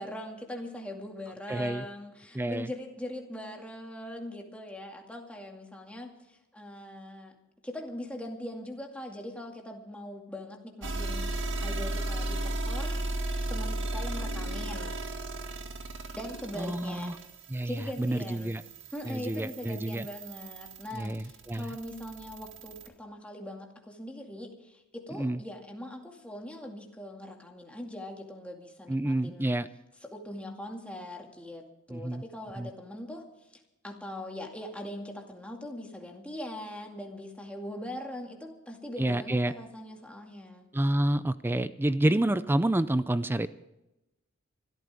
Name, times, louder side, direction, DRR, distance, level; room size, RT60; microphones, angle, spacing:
voice 1, 0.0-7.4 7.6-15.0 16.1-17.2 17.6-18.6 18.9-29.6 30.0-33.3 33.8-40.7, left 1 dB, 5° left, 1 dB, 2.2 m, -41 dB
voice 2, 1.5-1.8 2.3-2.7 16.6-17.2 17.5-18.6 19.0-20.1 20.9-21.7 25.2-25.4 28.9-29.7 31.9-32.2 32.6-32.7 39.0-39.5 40.7-43.5, right 1 dB, 10° right, 14 dB, 0.4 m, -28 dB
sound 1, 10.8-22.9, right 1 dB, 65° right, 2.0 m, -35 dB
25.0 x 13.5 x 3.5 m, 0.92 s
head